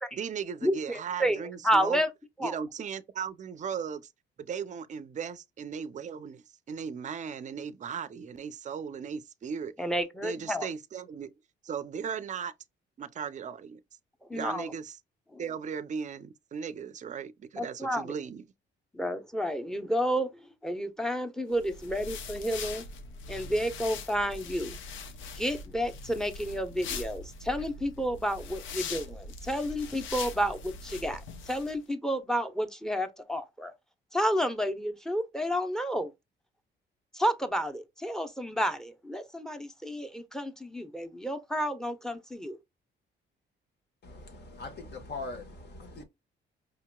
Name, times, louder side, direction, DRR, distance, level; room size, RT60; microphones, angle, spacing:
voice 1, 0.1-2.0 2.4-4.1 4.4-9.7 10.2-11.3 11.6-12.5 13.0-13.8 14.3-15.0 15.4-18.4, right 7 dB, 40° right, 0.5 m, -37 dB
voice 2, 0.6-2.1 2.4-2.6 9.8-10.7 14.3-14.7 15.3-15.4 17.6-18.1 18.9-20.3 20.6-22.8 23.3-24.8 25.3-31.2 31.5-33.7 34.1-36.1 37.1-42.6, equal, 5° left, 0.7 m, -30 dB
sound 1, 21.5-31.7, left 4 dB, 75° left, 0.7 m, -41 dB
voice 3, 44.0-46.0, left 3 dB, 55° left, 1.2 m, -41 dB
4.9 x 2.8 x 2.2 m
cardioid pair, 90°, 20 cm